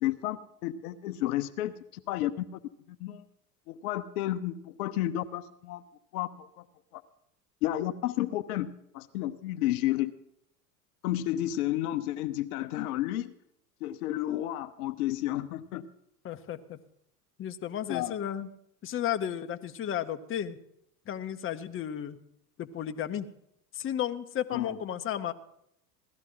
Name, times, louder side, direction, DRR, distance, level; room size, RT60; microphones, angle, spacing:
voice 1, 0.0-1.7 2.1-2.4 2.9-3.2 3.7-5.8 6.1-6.5 6.9-7.0 7.6-10.1 11.0-13.3 13.8-15.8 17.9-18.2 24.5-24.8, left 14 dB, 65° left, 12 dB, 0.9 m, -31 dB
voice 2, 16.2-16.8 17.4-18.5 18.8-20.6 21.1-22.2 22.6-23.3 23.7-25.3, left 10 dB, 25° left, 9 dB, 0.9 m, -33 dB
17.0 x 13.0 x 3.9 m, 0.75 s
hypercardioid pair, 90°, 48 cm